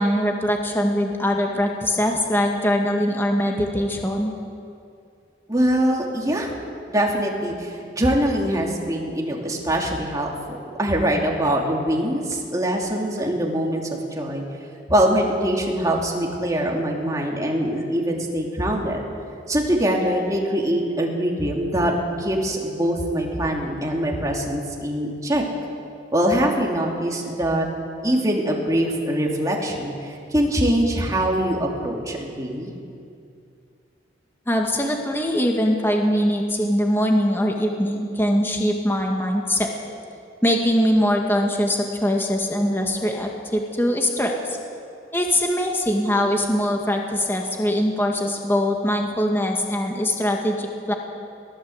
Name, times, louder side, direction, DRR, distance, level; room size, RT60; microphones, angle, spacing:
voice 1, 0.0-4.3 34.5-39.7 40.4-44.6 45.1-50.9, equal, 10° left, 1 dB, 1.9 m, -22 dB
voice 2, 5.5-6.5 6.9-13.8 14.1-14.4 14.9-19.0 19.5-25.4 26.1-27.7 28.0-32.7, right 1 dB, 20° right, -1 dB, 3.0 m, -23 dB
22.5 x 16.5 x 8.1 m, 2.4 s
head